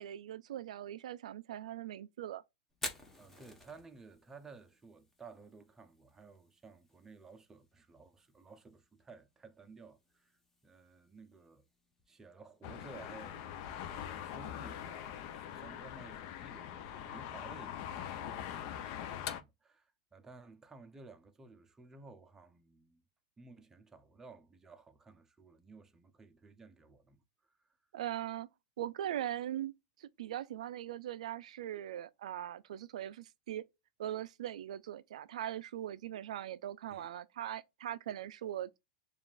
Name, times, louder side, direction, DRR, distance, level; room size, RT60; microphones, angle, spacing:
voice 1, 0.0-2.4 27.9-28.5 28.8-29.7 30.0-33.6 34.0-38.8, right 11 dB, 85° right, 0.3 m, -40 dB
Fire, 2.7-16.6, left 2 dB, 10° left, 0.9 m, -53 dB
voice 2, 3.2-11.7 12.1-13.5 13.9-23.0 23.4-27.8 36.9-37.1, right 4 dB, 15° right, 0.5 m, -56 dB
sound 1, 12.6-19.4, left 10 dB, 55° left, 0.5 m, -43 dB
6.9 x 2.4 x 2.4 m
supercardioid pair, 130°, 4 cm